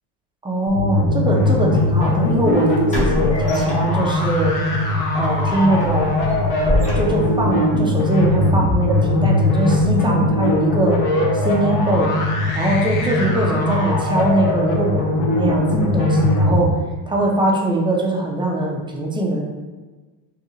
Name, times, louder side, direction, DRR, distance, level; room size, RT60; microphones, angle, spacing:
voice 1, 0.4-4.5 5.1-6.1 6.9-11.0 11.3-12.1 12.5-16.7 17.1-19.4, right 1 dB, 10° right, -2 dB, 0.4 m, -21 dB
sound 1, 0.7-16.7, left 2 dB, 45° left, 0.7 m, -19 dB
sound 2, 1.8-1.9 2.9-4.4 4.8-4.9 5.4-7.5, left 1 dB, 15° left, 0.8 m, -25 dB
2.8 x 2.5 x 4.2 m, 1.3 s
cardioid pair, 125°, 47 cm